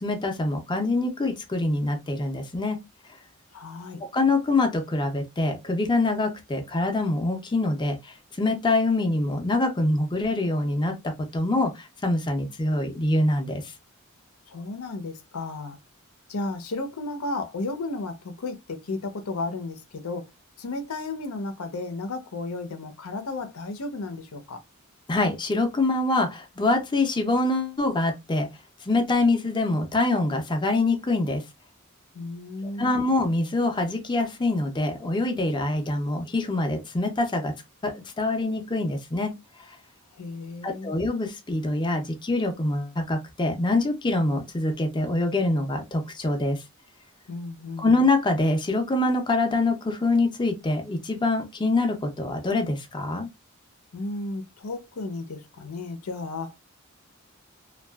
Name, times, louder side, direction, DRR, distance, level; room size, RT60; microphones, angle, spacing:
voice 1, 0.0-2.8 4.1-11.0 11.3-13.7 25.1-28.5 28.9-31.4 32.8-37.5 37.8-39.3 40.6-46.6 47.8-53.3, left 2 dB, 20° left, 0.5 m, -25 dB
voice 2, 3.5-4.0 14.5-15.8 16.3-20.3 20.6-24.6 32.1-33.1 40.1-40.9 47.3-47.9 53.9-56.5, left 2 dB, 90° left, 0.6 m, -33 dB
2.6 x 2.3 x 2.2 m
head